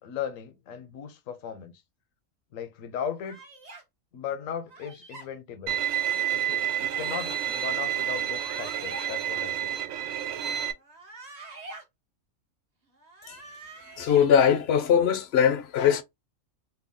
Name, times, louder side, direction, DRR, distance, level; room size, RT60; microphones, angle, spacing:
voice 1, 0.0-1.8 2.5-3.4 4.1-5.8 6.1-9.7, left 8 dB, 80° left, 1.1 m, -37 dB
sound 1, 3.2-3.8 4.7-5.3 6.4-7.2 8.2-9.1 10.8-11.8 13.0-14.3, right 3 dB, 35° right, 0.8 m, -45 dB
Bowed string instrument, 5.7-10.7, right 10 dB, 85° right, 1.0 m, -29 dB
voice 2, 14.0-16.0, left 8 dB, 60° left, 0.7 m, -21 dB
3.5 x 2.2 x 3.5 m
omnidirectional pair, 1.4 m